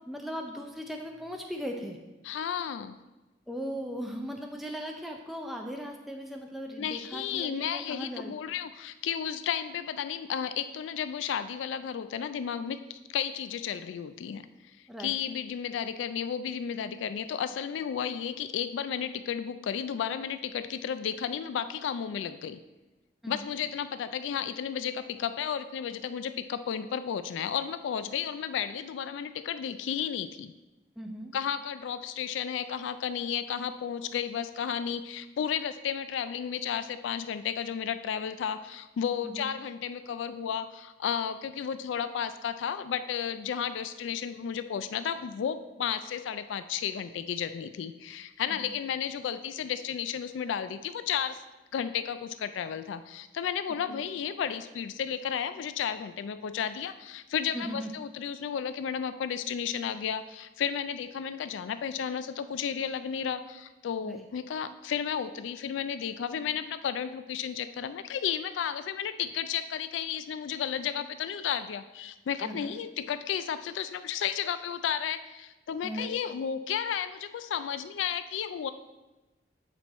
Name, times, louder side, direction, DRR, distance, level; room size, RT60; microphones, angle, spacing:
voice 1, 0.1-2.0 3.5-8.3 14.9-15.1 23.2-23.5 31.0-31.3 39.2-39.5 48.6-48.7 53.9-54.0 57.5-57.9 64.0-64.2 72.4-72.7 75.8-76.1, equal, ahead, 2 dB, 0.5 m, -38 dB
voice 2, 2.2-3.0 6.8-14.5 15.0-22.6 23.3-30.5 31.3-51.4 51.7-78.7, left 8 dB, 90° left, 12 dB, 0.3 m, -33 dB
8.7 x 4.5 x 4.1 m, 1.1 s
head